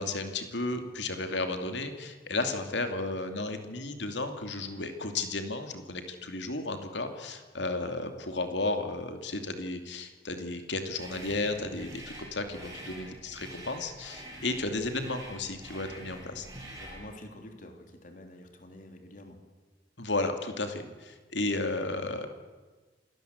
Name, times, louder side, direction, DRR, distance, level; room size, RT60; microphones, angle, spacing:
voice 1, 0.0-16.5 20.0-22.3, left 2 dB, 70° left, 7 dB, 2.6 m, -33 dB
sound 1, 10.9-17.1, right 1 dB, 20° right, 6.4 m, -46 dB
voice 2, 16.1-16.4 16.8-19.4 20.8-20.9, left 1 dB, 45° left, 4 dB, 3.4 m, -48 dB
27.5 x 18.0 x 8.0 m, 1.3 s
head